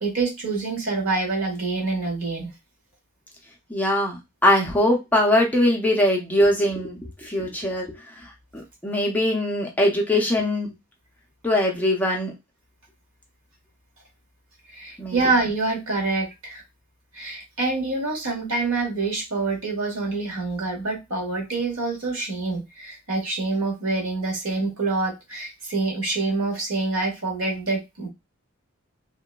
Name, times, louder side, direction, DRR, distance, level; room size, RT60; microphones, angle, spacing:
voice 1, 0.0-2.5 14.7-16.6 17.1-28.1, right 3 dB, 85° right, 0 dB, 1.2 m, -26 dB
voice 2, 3.7-10.7 11.4-12.3 15.0-15.2, left 1 dB, 10° left, -1 dB, 0.5 m, -22 dB
2.9 x 2.1 x 2.2 m, 0.22 s
head